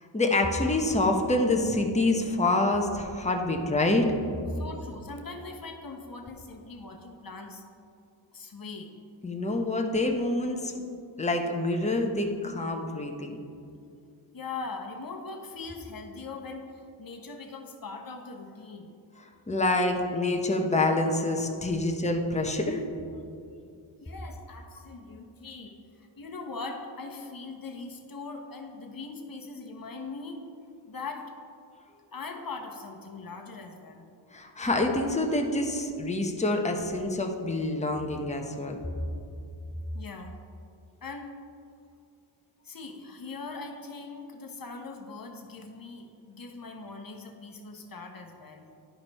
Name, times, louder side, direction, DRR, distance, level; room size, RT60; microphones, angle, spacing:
voice 1, 0.1-4.1 9.2-10.8 11.2-13.3 19.5-22.9 34.3-38.8, left 2 dB, 15° left, 2 dB, 0.9 m, -26 dB
voice 2, 4.5-7.6 8.3-8.9 14.3-18.9 24.0-30.4 30.9-31.3 32.1-34.1 39.9-40.3 41.0-41.3 42.6-48.7, left 3 dB, 45° left, 3 dB, 1.1 m, -41 dB
10.5 x 5.1 x 4.2 m, 2.5 s
cardioid pair, 50°, 49 cm